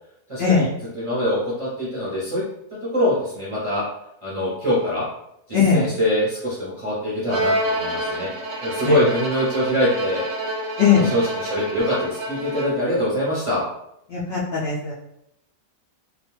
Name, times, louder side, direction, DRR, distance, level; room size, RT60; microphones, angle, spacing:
voice 1, 0.3-0.7 0.9-2.4 2.8-3.8 4.2-5.0 5.5-8.3 8.6-10.2 10.9-13.6, equal, 35° right, -9 dB, 0.5 m, -23 dB
voice 2, 5.5-5.8 8.8-9.0 10.8-11.1 14.1-14.9, left 6 dB, 65° left, -6 dB, 0.6 m, -19 dB
Bowed string instrument, 7.3-13.0, right 1 dB, 65° right, 0.8 m, -28 dB
2.4 x 2.2 x 3.0 m, 0.79 s
omnidirectional pair, 1.5 m